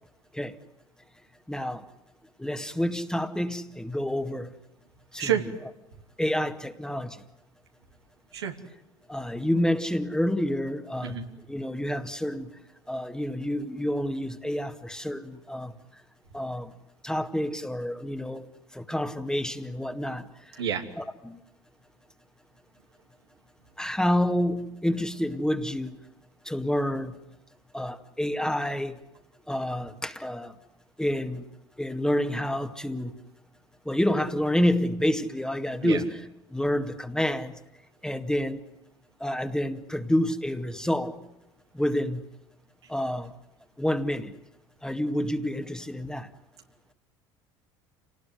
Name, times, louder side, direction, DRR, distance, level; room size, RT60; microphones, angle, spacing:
voice 1, 1.5-1.8 2.4-4.5 5.1-5.3 6.2-7.2 9.1-12.5 12.9-15.7 16.3-16.7 17.0-18.5 18.7-20.2 21.0-21.4 23.8-26.0 26.5-27.1 27.7-29.0 29.5-30.5 31.0-31.4 31.8-33.1 33.9-36.1 36.5-37.5 38.0-38.6 39.2-41.2 41.7-42.2 42.9-43.3 43.8-44.3 44.8-46.3, left 1 dB, 5° left, 7 dB, 2.1 m, -28 dB
voice 2, 5.2-5.5 8.3-8.5 11.0-11.2 20.6-20.8 35.8-36.0, right 9 dB, 90° right, 3 dB, 2.7 m, -28 dB
28.5 x 19.0 x 9.6 m, 0.92 s
hypercardioid pair, 70°, 13 cm